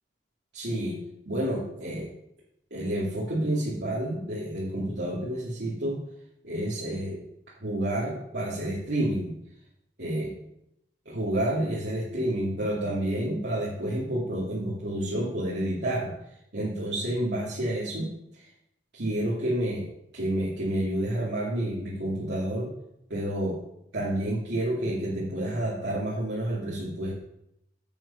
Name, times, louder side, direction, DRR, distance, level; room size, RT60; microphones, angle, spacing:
voice 1, 0.5-1.0 1.3-2.1 2.7-6.0 6.4-7.2 7.6-9.3 10.0-10.3 11.1-16.1 16.5-18.5 18.9-19.9 20.1-22.7 23.1-23.6 23.9-27.1, right 1 dB, 70° right, -7 dB, 2.5 m, -29 dB
9.3 x 8.0 x 5.7 m, 0.79 s
head